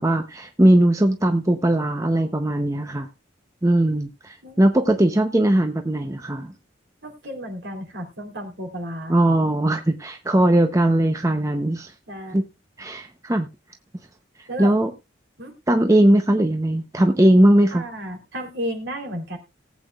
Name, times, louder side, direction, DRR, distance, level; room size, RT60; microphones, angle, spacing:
voice 1, 0.0-3.1 3.6-6.5 9.1-11.9 12.3-12.4 12.8-13.5 14.6-14.9 15.7-17.8, right 1 dB, 15° right, 0.7 m, -19 dB
voice 2, 7.0-9.2 12.1-12.4 14.5-14.7 15.4-15.5 17.7-19.4, equal, 65° right, 3.3 m, -33 dB
19.0 x 8.4 x 2.4 m
head